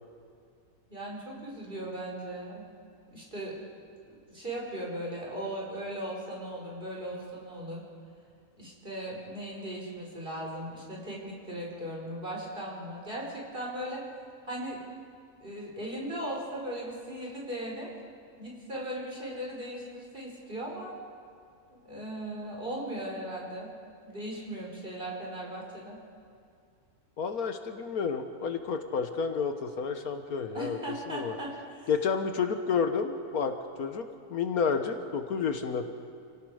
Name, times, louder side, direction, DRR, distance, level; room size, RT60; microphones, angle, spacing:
voice 1, 0.9-2.6 3.1-3.6 4.1-7.8 8.6-14.0 14.5-14.8 15.4-17.9 18.4-20.9 21.7-23.7 24.0-26.0 30.5-31.9, right 1 dB, 35° right, -3 dB, 5.0 m, -38 dB
voice 2, 27.2-30.8 31.1-31.3 31.9-33.5 33.8-35.9, left 6 dB, 75° left, 7 dB, 1.6 m, -30 dB
29.0 x 18.0 x 5.0 m, 2.4 s
omnidirectional pair, 1.6 m